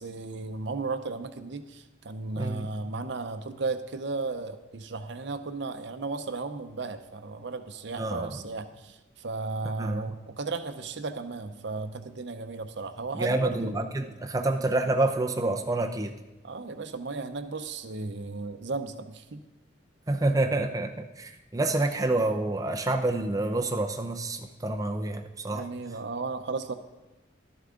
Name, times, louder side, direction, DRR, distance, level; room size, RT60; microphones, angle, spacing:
voice 1, 0.0-13.8 16.4-19.4 25.5-26.7, right 3 dB, 65° right, 9 dB, 0.7 m, -35 dB
voice 2, 2.4-2.7 8.0-8.3 9.8-10.0 13.2-16.1 20.1-25.7, right 2 dB, 20° right, 4 dB, 0.5 m, -28 dB
12.5 x 11.0 x 3.8 m, 1.0 s
head